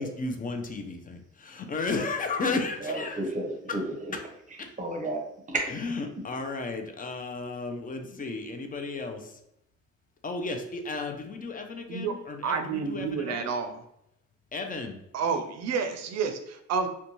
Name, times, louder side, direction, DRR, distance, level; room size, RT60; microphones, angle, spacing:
voice 1, 0.0-3.2 4.6-4.7 5.7-9.4 10.2-13.5 14.5-15.0, left 3 dB, 30° left, 5 dB, 0.4 m, -34 dB
voice 2, 2.5-4.2 4.8-5.2 5.5-5.6, right 2 dB, 25° right, 2 dB, 0.7 m, -32 dB
voice 3, 11.9-13.8 15.1-16.9, right 5 dB, 60° right, 8 dB, 0.5 m, -30 dB
2.5 x 2.2 x 2.9 m, 0.80 s
cardioid pair, 90°, 30 cm